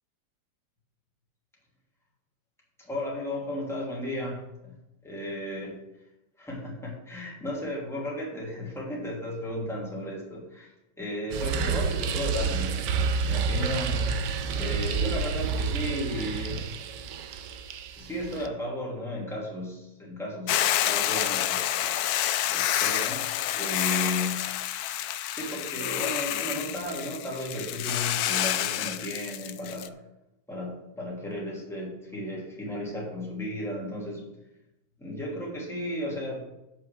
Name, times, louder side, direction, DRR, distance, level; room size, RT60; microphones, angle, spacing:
voice 1, 2.8-4.7 5.0-5.7 6.4-10.7 11.0-13.0 13.2-14.0 14.5-16.6 18.0-21.7 22.5-24.5 25.3-29.9 30.5-34.3 35.0-36.4, left 1 dB, ahead, -5 dB, 2.7 m, -34 dB
sound 1, 11.3-18.5, right 5 dB, 75° right, 1.3 m, -29 dB
Hiss / Boiling, 20.5-29.9, left 12 dB, 70° left, 0.9 m, -28 dB
8.2 x 6.1 x 6.6 m, 0.93 s
omnidirectional pair, 1.9 m